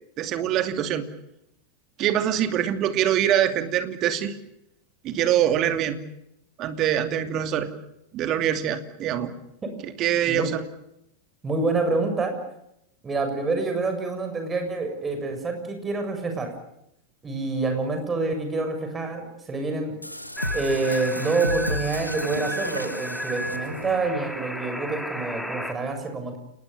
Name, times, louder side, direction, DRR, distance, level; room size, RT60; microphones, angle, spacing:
voice 1, 0.2-1.0 2.0-4.3 5.0-6.0 6.6-7.7 8.1-9.3 9.8-10.6, right 10 dB, 35° right, 8 dB, 2.7 m, -24 dB
voice 2, 11.4-12.4 13.0-16.5 17.2-20.0 20.5-26.4, right 3 dB, 15° right, 6 dB, 7.2 m, -27 dB
sound 1, 20.0-24.2, left 1 dB, 90° left, 1.7 m, -32 dB
sound 2, 20.4-25.7, equal, ahead, 2.8 m, -34 dB
29.0 x 20.5 x 7.0 m, 0.79 s
figure-of-eight pair, 90°, 0 cm